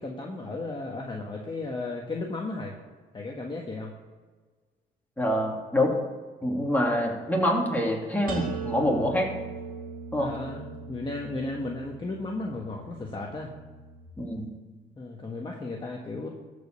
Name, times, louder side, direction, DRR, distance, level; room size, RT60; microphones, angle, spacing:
voice 1, 0.0-2.7 3.1-3.9 10.2-13.5 15.0-16.3, left 2 dB, 25° left, 0 dB, 1.5 m, -34 dB
voice 2, 5.2-5.9 6.4-9.3 10.1-10.3 14.2-14.5, left 1 dB, 10° left, -2 dB, 3.0 m, -26 dB
sound 1, 8.3-14.1, right 5 dB, 45° right, 2.6 m, -40 dB
14.0 x 5.3 x 6.7 m, 1.4 s
cardioid pair, 90°, 20 cm